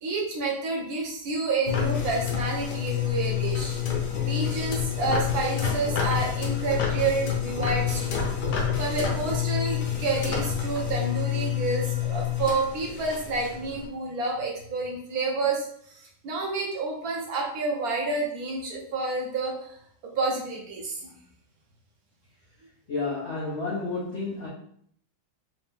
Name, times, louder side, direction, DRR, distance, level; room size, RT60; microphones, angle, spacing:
voice 1, 0.0-3.8 4.2-8.3 8.8-19.8 20.2-21.1, right 3 dB, 60° right, -1 dB, 1.2 m, -29 dB
sound 1, 1.7-13.9, left 9 dB, 65° left, 1.3 m, -28 dB
voice 2, 22.9-24.5, left 3 dB, 85° left, -6 dB, 0.5 m, -30 dB
3.8 x 2.5 x 3.6 m, 0.65 s
omnidirectional pair, 2.2 m